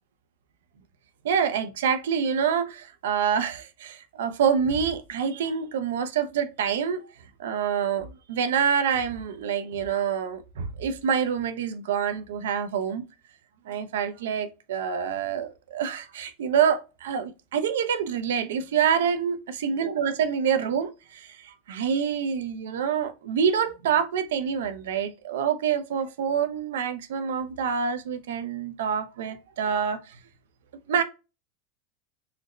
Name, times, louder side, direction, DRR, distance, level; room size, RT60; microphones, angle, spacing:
voice 1, 1.2-7.0 7.4-13.0 13.7-30.2 30.9-31.0, right 7 dB, 80° right, 0.5 m, -26 dB
3.9 x 2.1 x 2.9 m
hypercardioid pair, 110°, 0 cm